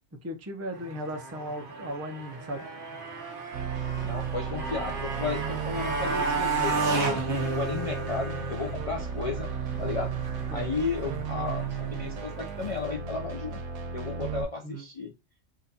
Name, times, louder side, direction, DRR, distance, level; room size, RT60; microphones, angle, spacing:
voice 1, 0.2-2.7 8.0-8.1 10.5-10.7 11.0-11.2 14.6-14.8, right 1 dB, 20° right, 0.4 m, -36 dB
Motorcycle, 0.7-12.8, right 3 dB, 50° right, 1.0 m, -33 dB
sound 1, 3.5-14.4, right 6 dB, 90° right, 1.1 m, -35 dB
voice 2, 4.0-7.0 7.4-9.5 9.8-10.2 10.5-13.6 13.9-15.1, left 4 dB, 50° left, 0.4 m, -34 dB
3.8 x 2.7 x 2.7 m
omnidirectional pair, 1.2 m